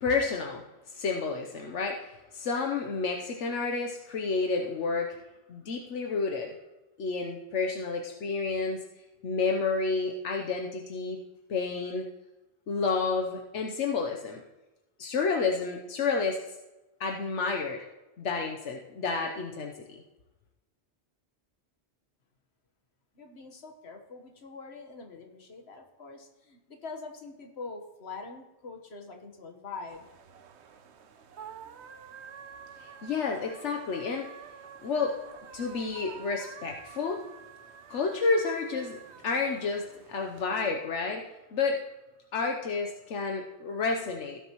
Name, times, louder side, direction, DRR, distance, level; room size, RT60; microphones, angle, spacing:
voice 1, 0.0-5.1 5.5-6.5 7.0-8.8 9.2-11.2 11.5-12.1 12.7-14.4 15.0-16.4 17.0-17.8 18.2-20.0 32.8-34.3 34.8-35.1 35.5-37.2 37.9-39.0 39.2-41.8 42.3-44.4, left 4 dB, 80° left, 2 dB, 1.2 m, -30 dB
voice 2, 23.1-30.0, left 4 dB, 65° left, 3 dB, 1.6 m, -44 dB
sound 1, 29.9-40.4, right 7 dB, 70° right, 1.0 m, -49 dB
16.5 x 7.0 x 3.0 m, 1.0 s
omnidirectional pair, 1.2 m